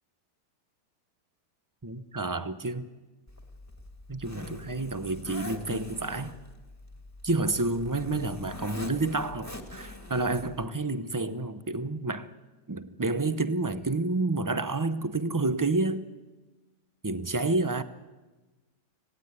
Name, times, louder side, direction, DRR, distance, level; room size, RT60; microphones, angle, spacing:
voice 1, 1.8-2.9 4.1-6.4 7.2-12.3 12.7-16.0 17.0-17.8, right 2 dB, 25° right, 0.4 m, -29 dB
Zipper (clothing), 3.3-10.6, left 2 dB, 10° left, 2.0 m, -44 dB
25.5 x 17.5 x 9.7 m
omnidirectional pair, 1.9 m